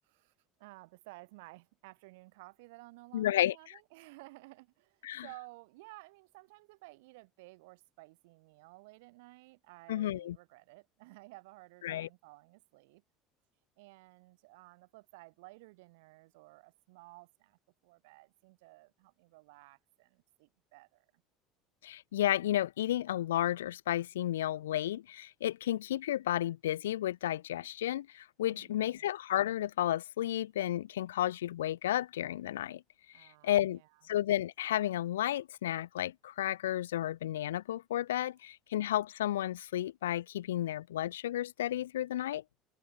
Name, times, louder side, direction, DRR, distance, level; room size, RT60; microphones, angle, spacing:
voice 1, 0.6-13.0 13.8-21.2 28.5-29.1 33.1-34.0, right 24 dB, 75° right, 2.8 m, -55 dB
voice 2, 3.1-3.6 5.0-5.3 9.9-10.4 11.8-12.1 21.8-32.8 33.1-33.8 34.1-42.4, left 12 dB, 85° left, 0.3 m, -32 dB
hypercardioid pair, 70°, 0 cm